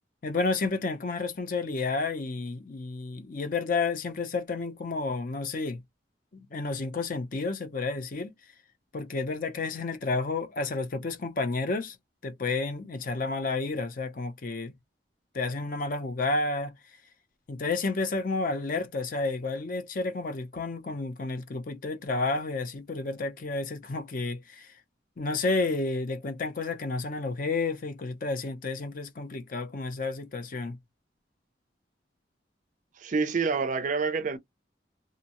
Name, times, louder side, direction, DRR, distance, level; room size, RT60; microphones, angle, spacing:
voice 1, 0.2-5.8 6.3-8.3 8.9-12.0 12.2-14.7 15.3-16.8 17.5-24.7 25.2-30.8, left 3 dB, 45° left, 0.5 m, -31 dB
voice 2, 33.0-34.4, right 4 dB, 45° right, 0.4 m, -27 dB
2.6 x 2.0 x 2.8 m
head